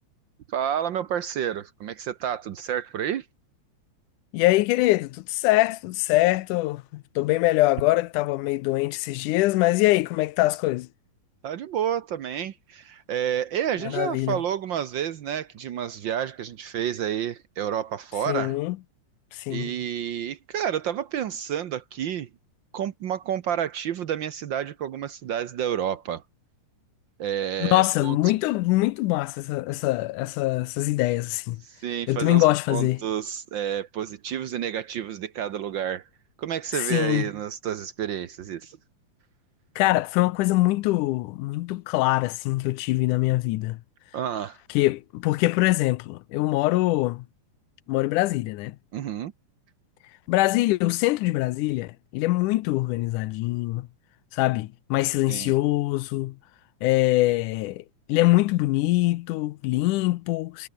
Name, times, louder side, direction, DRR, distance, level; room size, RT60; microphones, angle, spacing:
voice 1, 0.5-3.3 11.4-18.6 19.5-22.3 22.7-26.2 27.2-28.2 31.6-36.0 36.4-38.8 44.1-44.6 48.9-49.3 55.3-55.5, right 9 dB, 80° right, 1.0 m, -30 dB
voice 2, 4.3-10.9 13.8-14.4 18.3-18.8 19.3-19.7 27.6-31.6 32.1-33.0 36.7-37.2 39.8-43.8 44.7-47.3 47.9-48.8 50.3-53.9 54.3-56.4 56.8-60.7, left 18 dB, 85° left, 2.2 m, -23 dB
omnidirectional pair, 3.5 m